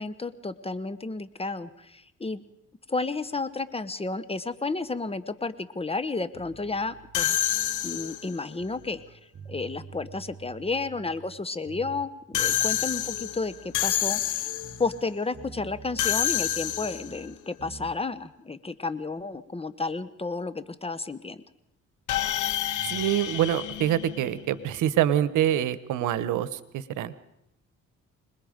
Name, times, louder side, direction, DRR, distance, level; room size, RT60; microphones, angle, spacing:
voice 1, 0.0-2.4 2.9-7.4 7.8-9.2 9.5-14.5 14.8-21.4, left 3 dB, 20° left, 13 dB, 1.1 m, -32 dB
sound 1, 6.3-9.0 9.3-11.4 11.6-15.1 15.3-18.0, right 5 dB, 45° right, 3.1 m, -48 dB
sound 2, 7.1-8.4 12.3-14.9 16.0-17.3 22.1-24.6, left 12 dB, 80° left, 1.4 m, -28 dB
voice 2, 22.8-27.1, right 11 dB, 85° right, 15 dB, 1.1 m, -25 dB
26.5 x 20.5 x 5.2 m, 0.83 s
cardioid pair, 90°, 30 cm